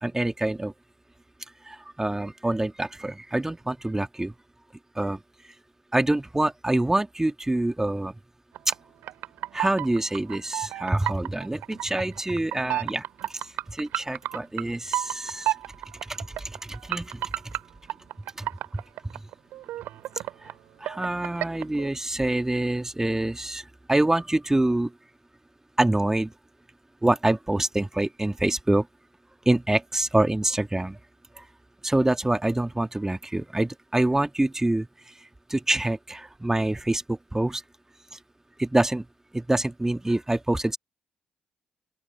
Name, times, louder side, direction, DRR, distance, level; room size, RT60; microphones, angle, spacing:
voice 1, 0.0-0.7 1.6-4.3 4.9-5.2 5.9-8.1 9.5-15.5 16.0-17.3 18.4-18.5 20.4-20.5 20.8-24.9 25.8-26.3 27.0-28.9 29.4-31.0 31.4-31.5 31.8-34.9 35.5-37.6 38.6-39.0 39.3-40.8, right 1 dB, 15° right, 1.8 m, -26 dB
sound 1, 8.5-8.8 9.0-14.6 14.9-20.5 20.8-21.9, right 14 dB, 65° right, 3.6 m, -32 dB
open air
hypercardioid pair, 45°, 4 cm